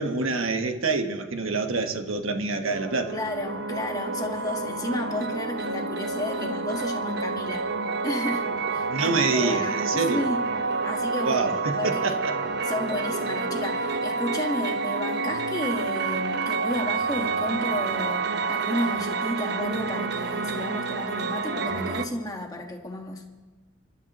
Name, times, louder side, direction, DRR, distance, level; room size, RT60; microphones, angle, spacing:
voice 1, 0.0-3.1 8.9-10.2 11.2-12.3, right 3 dB, 85° right, 5 dB, 1.3 m, -26 dB
sound 1, 2.7-22.1, right 4 dB, 55° right, 0.9 m, -29 dB
voice 2, 3.1-7.7 8.0-10.4 10.8-12.2 12.7-23.2, left 1 dB, 20° left, 2 dB, 1.5 m, -32 dB
27.5 x 12.0 x 3.0 m, 1.3 s
head